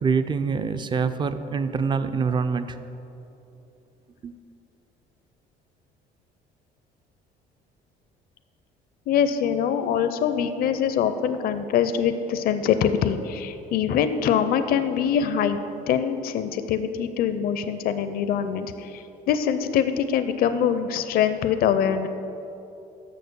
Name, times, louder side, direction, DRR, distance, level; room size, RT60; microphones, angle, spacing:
voice 1, 0.0-2.8 4.2-4.3, right 5 dB, 25° right, 11 dB, 0.4 m, -25 dB
voice 2, 9.1-15.6 15.9-22.1, left 8 dB, 60° left, 10 dB, 0.5 m, -24 dB
6.5 x 6.4 x 6.8 m, 2.8 s
cardioid pair, 110°, 17 cm